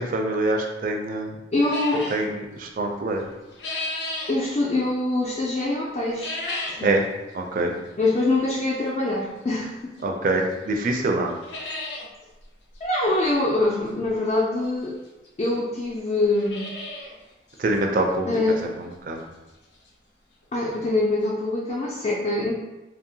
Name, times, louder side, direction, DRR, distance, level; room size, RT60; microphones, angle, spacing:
voice 1, 0.0-1.3 2.1-3.3 6.8-7.0 7.3-7.7 10.0-11.3 17.6-18.3 18.8-19.3, right 2 dB, 50° right, 2 dB, 0.4 m, -25 dB
voice 2, 1.5-2.1 4.3-6.4 6.7-7.0 8.0-9.9 12.8-15.0 15.4-16.7 18.3-18.7 20.5-22.5, left 2 dB, 35° left, -5 dB, 0.3 m, -24 dB
sound 1, 1.7-2.2 3.2-4.3 6.1-6.9 7.3-7.4 8.2-8.3 10.0-10.1 10.5-10.6 10.9-11.0 11.3-12.1 12.4-12.5 12.7-12.8 14.4-14.5 15.2-15.3 15.5-15.6 16.1-17.2 17.5-17.6 18.1-18.2 18.6-18.7 20.4-20.5 20.7-20.8 21.2-21.3, left 2 dB, 90° left, 0.6 m, -33 dB
2.7 x 2.1 x 2.7 m, 1.0 s
head